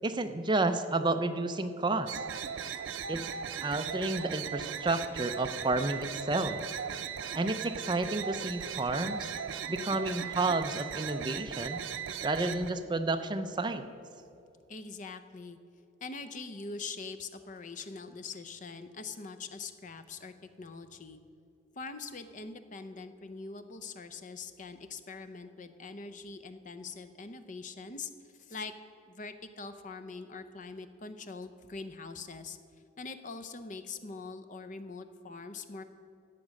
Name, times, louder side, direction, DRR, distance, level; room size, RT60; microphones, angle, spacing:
voice 1, 0.0-2.2 3.1-3.3 3.6-6.6 7.4-9.3 9.7-11.8 12.2-13.8, right 2 dB, 25° right, 8 dB, 0.5 m, -31 dB
sound 1, 2.1-12.7, right 7 dB, 90° right, 0.5 m, -38 dB
voice 2, 14.7-15.6 16.0-21.2 21.7-28.7 29.1-32.6 33.0-35.8, left 4 dB, 40° left, 10 dB, 0.6 m, -43 dB
13.0 x 8.5 x 6.4 m, 2.5 s
head